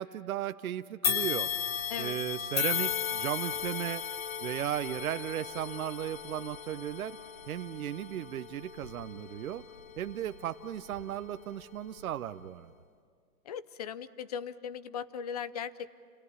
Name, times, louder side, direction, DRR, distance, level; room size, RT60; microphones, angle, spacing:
voice 1, 0.0-1.5 2.0-4.0 4.4-7.2 7.5-9.6 10.0-12.7, right 11 dB, 65° right, 11 dB, 0.9 m, -36 dB
sound 1, 1.0-10.4 10.9-11.0 12.0-12.1, left 8 dB, 60° left, 2.8 m, -35 dB
voice 2, 13.4-15.9, left 8 dB, 25° left, 16 dB, 0.5 m, -38 dB
29.0 x 17.0 x 9.6 m, 2.1 s
hypercardioid pair, 155°, 45 cm